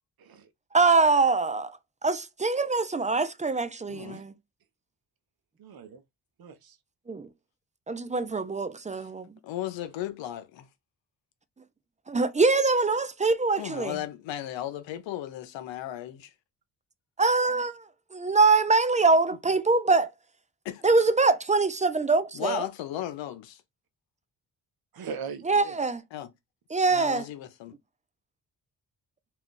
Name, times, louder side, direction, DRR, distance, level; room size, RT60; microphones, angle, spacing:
voice 1, 0.7-4.3 7.1-7.3 7.9-9.4 12.1-14.0 17.2-20.1 20.8-22.7 25.4-26.0 26.7-27.2, right 3 dB, 20° right, 0.4 m, -24 dB
voice 2, 3.9-4.2 8.9-9.1 9.4-10.7 13.6-16.3 20.6-20.8 22.3-23.6 26.1-26.3 26.9-27.7, left 12 dB, 85° left, 0.7 m, -36 dB
voice 3, 5.6-6.0 6.4-6.8 24.9-25.8, right 6 dB, 55° right, 0.7 m, -40 dB
2.4 x 2.3 x 3.7 m
supercardioid pair, 50°, 44 cm